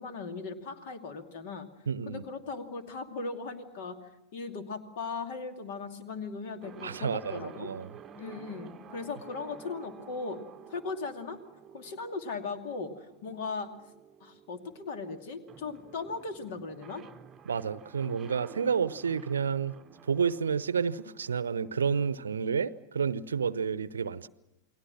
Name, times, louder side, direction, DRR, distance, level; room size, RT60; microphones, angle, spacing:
voice 1, 0.0-1.7 2.1-4.0 4.3-7.7 8.2-10.4 10.7-11.4 11.7-13.7 14.2-17.0, left 4 dB, 50° left, 7 dB, 2.6 m, -38 dB
voice 2, 1.9-2.2 6.8-7.9 17.5-19.7 20.1-24.3, right 6 dB, 70° right, 18 dB, 0.8 m, -30 dB
sound 1, 6.6-22.4, right 7 dB, 25° right, 1.0 m, -52 dB
29.5 x 21.0 x 6.2 m, 0.93 s
figure-of-eight pair, 90°, 0 cm